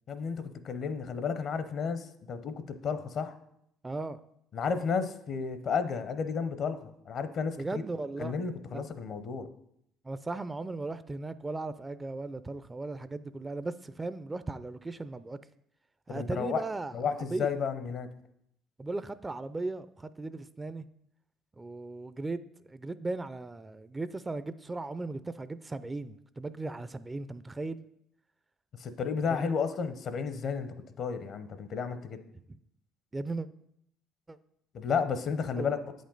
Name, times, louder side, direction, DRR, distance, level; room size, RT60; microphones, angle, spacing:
voice 1, 0.1-2.5 2.8-3.3 4.5-7.8 8.2-9.5 16.1-16.6 16.9-18.1 28.8-32.2 34.7-35.8, left 6 dB, 55° left, 0.7 m, -32 dB
voice 2, 3.8-4.2 7.6-8.3 8.7-8.8 10.0-15.4 16.1-16.9 17.2-17.5 18.8-20.9 21.6-22.4 22.7-27.8 29.4-29.5 33.1-33.5 34.3-34.4 35.6-35.7, right 2 dB, 20° right, 0.4 m, -37 dB
8.2 x 5.2 x 3.9 m
supercardioid pair, 70°, 0 cm